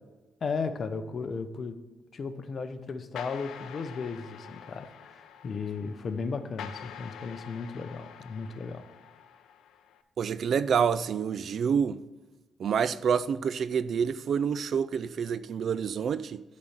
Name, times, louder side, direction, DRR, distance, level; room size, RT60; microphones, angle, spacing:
voice 1, 0.4-1.8 2.1-8.8, left 4 dB, 50° left, 0.7 m, -35 dB
sound 1, 3.2-10.0, left 8 dB, 80° left, 0.5 m, -46 dB
voice 2, 10.2-12.0 12.6-16.4, right 7 dB, 60° right, 0.3 m, -27 dB
8.6 x 4.2 x 6.4 m
cardioid pair, 80°, 0 cm